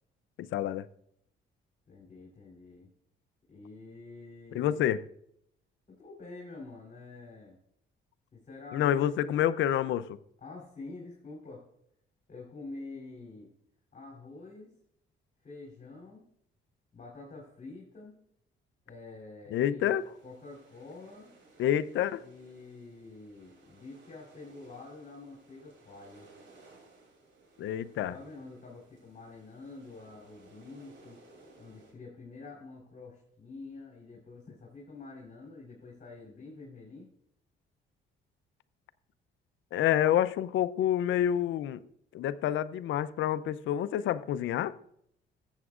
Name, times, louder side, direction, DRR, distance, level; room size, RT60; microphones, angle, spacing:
voice 1, 0.4-0.9 4.5-5.0 8.7-10.2 19.5-20.0 21.6-22.2 27.6-28.1 39.7-41.8 42.1-44.7, left 11 dB, 75° left, 0.5 m, -28 dB
voice 2, 1.9-2.9 3.5-4.9 5.9-7.6 8.3-9.4 10.4-11.6 12.3-13.5 13.9-14.7 15.4-16.2 16.9-18.2 18.8-21.3 22.2-26.3 28.1-31.2 31.6-37.1, left 3 dB, 40° left, 3.3 m, -47 dB
sound 1, 19.8-31.9, right 2 dB, 70° right, 2.8 m, -59 dB
14.5 x 8.0 x 2.4 m
cardioid pair, 90°, 20 cm